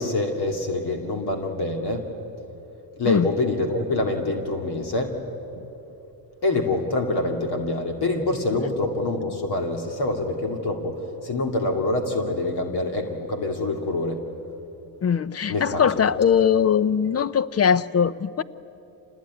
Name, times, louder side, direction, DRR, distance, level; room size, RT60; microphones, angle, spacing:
voice 1, 0.0-2.1 3.0-5.1 6.4-14.2 15.5-15.9, left 2 dB, 55° left, 4 dB, 2.7 m, -25 dB
voice 2, 15.0-18.4, left 7 dB, 35° left, 17 dB, 0.6 m, -21 dB
26.5 x 19.0 x 9.6 m, 3.0 s
cardioid pair, 80°, 46 cm